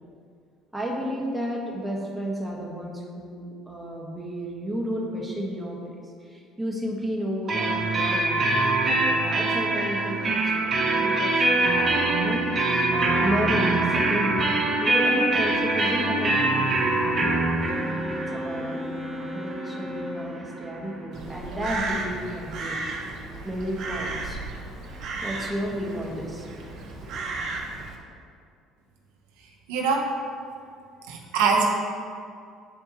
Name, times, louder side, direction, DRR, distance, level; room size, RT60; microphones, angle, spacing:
voice 1, 0.7-12.4 12.9-14.5 14.8-17.5 18.2-22.8 23.4-24.5 25.2-26.5 27.1-27.2, equal, 5° right, -2 dB, 1.3 m, -32 dB
Guitar Solo Sad loop, 7.5-21.1, right 2 dB, 35° right, 1.1 m, -24 dB
Wind instrument woodwind instrument, 17.6-20.5, left 1 dB, 15° left, 0.8 m, -35 dB
Crow, 21.1-28.0, right 3 dB, 55° right, 1.1 m, -34 dB
voice 2, 29.7-30.1 31.1-31.7, right 5 dB, 85° right, 0 dB, 0.8 m, -23 dB
10.0 x 4.4 x 2.9 m, 2.3 s
supercardioid pair, 90°, 0 cm